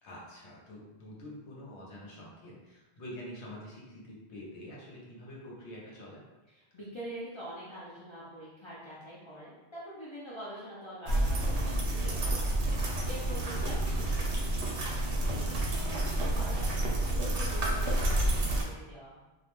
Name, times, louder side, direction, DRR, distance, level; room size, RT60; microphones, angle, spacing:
voice 1, 0.0-6.2, left 1 dB, 85° left, -4 dB, 1.0 m, -46 dB
voice 2, 6.5-12.8 13.0-14.5 15.2-19.2, equal, 45° left, -8 dB, 0.4 m, -45 dB
sound 1, 11.1-18.6, right 1 dB, 80° right, 0.9 m, -29 dB
2.4 x 2.1 x 3.0 m, 1.1 s
omnidirectional pair, 1.1 m